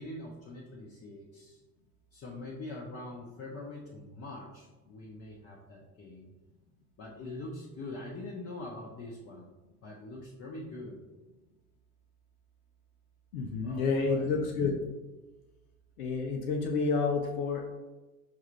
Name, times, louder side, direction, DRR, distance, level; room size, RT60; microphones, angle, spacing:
voice 1, 0.0-1.6 2.1-6.3 7.0-9.5 9.8-11.0 13.6-14.3, left 2 dB, 35° left, -3 dB, 0.8 m, -43 dB
voice 2, 13.3-14.8 16.0-17.6, left 4 dB, 80° left, 1 dB, 0.6 m, -29 dB
5.6 x 2.4 x 3.1 m, 1.2 s
hypercardioid pair, 60°, 44 cm